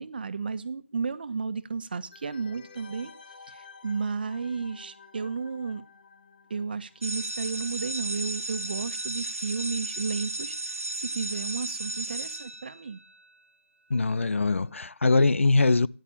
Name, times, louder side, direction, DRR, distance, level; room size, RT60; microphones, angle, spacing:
voice 1, 0.0-3.1 3.5-5.8 6.5-13.0, right 5 dB, 40° right, 1.3 m, -33 dB
sound 1, 2.1-7.6 7.8-7.9, left 5 dB, 40° left, 3.1 m, -51 dB
sound 2, 7.0-13.2, right 2 dB, 85° right, 1.3 m, -34 dB
voice 2, 13.9-15.9, left 3 dB, 65° left, 0.8 m, -22 dB
15.5 x 10.5 x 7.3 m
figure-of-eight pair, 160°, 8 cm